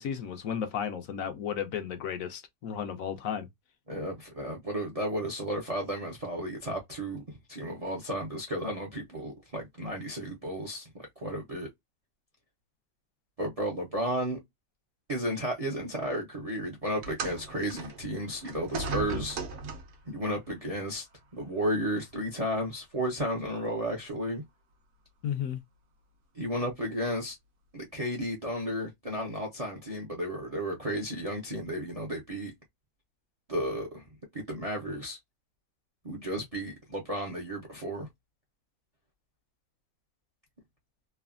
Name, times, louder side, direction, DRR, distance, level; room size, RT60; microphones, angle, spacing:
voice 1, 0.0-3.5 25.2-25.6, left 8 dB, 70° left, 1.0 m, -33 dB
voice 2, 3.9-11.7 13.4-14.4 15.1-19.4 20.1-21.1 21.3-24.4 26.3-27.4 27.7-32.5 33.5-34.0 34.3-35.2 36.0-38.1, equal, 40° right, 0.5 m, -33 dB
sound 1, 17.0-20.1 21.1-21.2 22.1-22.2, right 5 dB, 55° right, 0.8 m, -37 dB
3.2 x 2.2 x 2.3 m
omnidirectional pair, 1.6 m